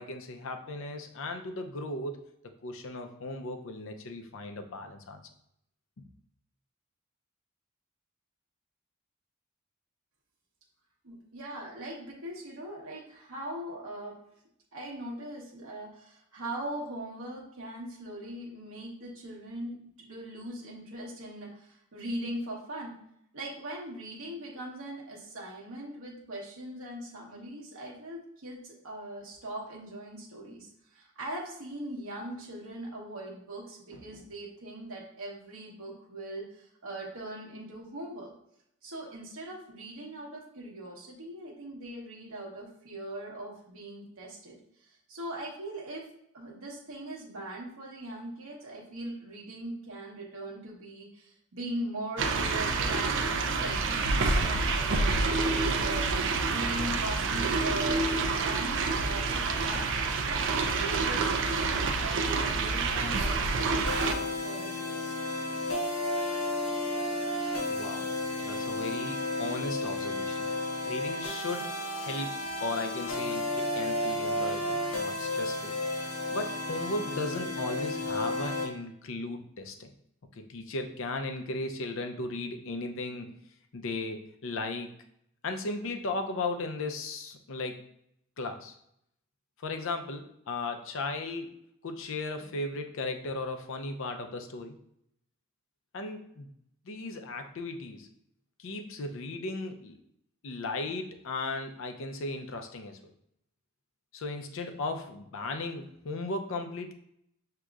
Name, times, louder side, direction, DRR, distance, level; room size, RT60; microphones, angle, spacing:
voice 1, 0.0-5.2 6.0-6.1 67.7-68.1 68.4-70.5 70.8-75.8 76.3-79.9 80.4-83.4 83.7-84.9 85.4-87.9 88.4-88.7 89.6-91.5 91.8-94.8 95.9-96.5 96.8-98.1 98.6-100.0 100.4-103.1 104.1-106.9, left 2 dB, 65° left, 6 dB, 0.5 m, -36 dB
voice 2, 11.0-14.2 14.7-22.9 23.3-38.3 38.8-46.0 46.3-65.2, right 1 dB, 85° right, -2 dB, 1.1 m, -40 dB
sound 1, 52.2-64.1, right 3 dB, 60° right, 0.4 m, -28 dB
sound 2, 63.9-78.7, left 1 dB, 85° left, 1.0 m, -32 dB
6.1 x 2.8 x 2.4 m, 0.75 s
head